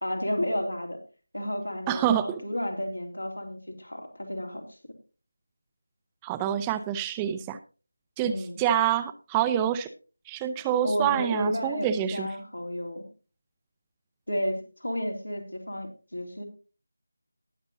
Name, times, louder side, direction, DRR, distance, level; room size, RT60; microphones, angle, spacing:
voice 1, 0.0-1.0 1.3-4.8 8.2-8.6 10.8-13.1 14.3-16.4, equal, 85° left, 3 dB, 2.9 m, -32 dB
voice 2, 1.9-2.4 6.2-7.6 8.2-8.3 8.6-9.9 10.3-12.3, right 10 dB, 10° right, 11 dB, 0.4 m, -26 dB
19.0 x 6.9 x 2.7 m, 0.35 s
figure-of-eight pair, 165°, 0 cm